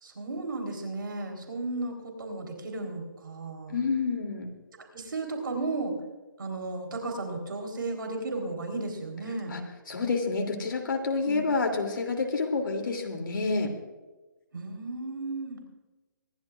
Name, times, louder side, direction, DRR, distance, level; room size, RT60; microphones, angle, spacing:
voice 1, 0.0-3.8 4.9-5.9 6.4-9.6 11.2-11.4 14.5-15.6, right 2 dB, 80° right, 3 dB, 3.9 m, -34 dB
voice 2, 3.7-4.5 9.5-9.6 9.9-13.7, left 4 dB, 75° left, 3 dB, 2.9 m, -28 dB
25.0 x 12.5 x 2.5 m, 1.2 s
hypercardioid pair, 155°, 11 cm